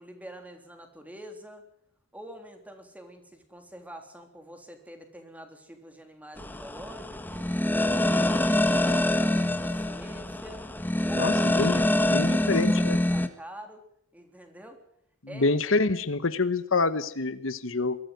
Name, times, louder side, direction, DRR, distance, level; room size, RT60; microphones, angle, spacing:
voice 1, 0.0-1.6 2.1-7.5 7.9-10.6 11.1-13.8 14.1-14.8 15.3-15.6, equal, 5° right, 5 dB, 3.4 m, -46 dB
sound 1, 6.4-13.3, left 1 dB, 10° left, 1.5 m, -25 dB
voice 2, 11.2-11.7 12.1-13.0 15.3-18.0, left 3 dB, 70° left, 13 dB, 1.1 m, -26 dB
22.5 x 14.0 x 9.4 m, 0.72 s
head